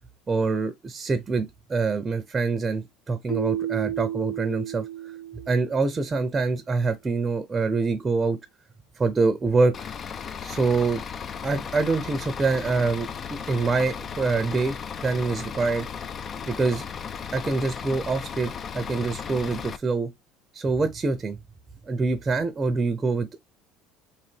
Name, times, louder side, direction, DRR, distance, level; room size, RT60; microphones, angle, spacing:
voice 1, 0.3-4.8 5.5-8.4 9.0-9.7 10.4-11.0 11.4-13.1 13.5-15.9 16.5-16.9 17.3-20.1 20.5-21.4 21.9-23.4, right 4 dB, 25° right, 0.6 m, -25 dB
Keyboard (musical), 3.3-6.1, right 10 dB, 25° left, 1.8 m, -33 dB
Bus / Idling, 9.7-19.8, left 7 dB, 40° left, 0.4 m, -36 dB
3.9 x 2.7 x 3.3 m
supercardioid pair, 85°, 0 cm